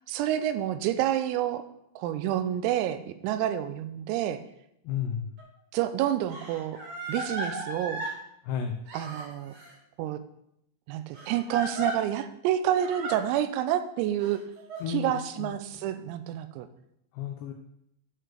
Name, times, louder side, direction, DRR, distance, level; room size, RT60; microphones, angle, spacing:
voice 1, 0.1-1.6 2.0-4.4 5.7-6.8 7.1-8.0 8.9-9.6 10.0-10.2 10.9-14.4 14.9-16.7, right 11 dB, 90° right, 11 dB, 3.4 m, -28 dB
voice 2, 4.8-5.3 8.4-8.8 14.8-15.1 15.4-15.5 17.1-17.5, left 8 dB, 80° left, 3 dB, 2.5 m, -32 dB
Crying sobbing, 5.4-5.5 6.3-8.2 8.9-9.7 11.1-11.9 12.8-13.2 14.2-14.8, right 1 dB, 50° right, 3.0 m, -36 dB
11.5 x 4.8 x 6.3 m, 0.77 s
omnidirectional pair, 6.0 m